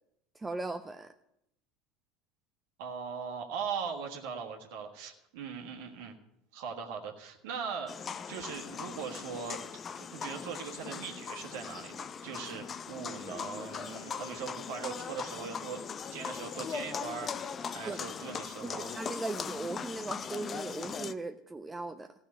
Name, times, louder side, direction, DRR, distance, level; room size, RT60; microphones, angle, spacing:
voice 1, 0.3-1.1 17.9-18.0 18.6-22.1, right 3 dB, 15° right, 7 dB, 0.6 m, -38 dB
voice 2, 2.8-6.2 6.5-9.6 9.9-15.8 16.1-17.3 17.7-19.0, right 6 dB, 60° right, 2 dB, 1.6 m, -40 dB
sound 1, 7.9-21.1, left 6 dB, 30° left, 0.6 m, -40 dB
16.0 x 6.2 x 9.2 m, 0.81 s
figure-of-eight pair, 70°, 0 cm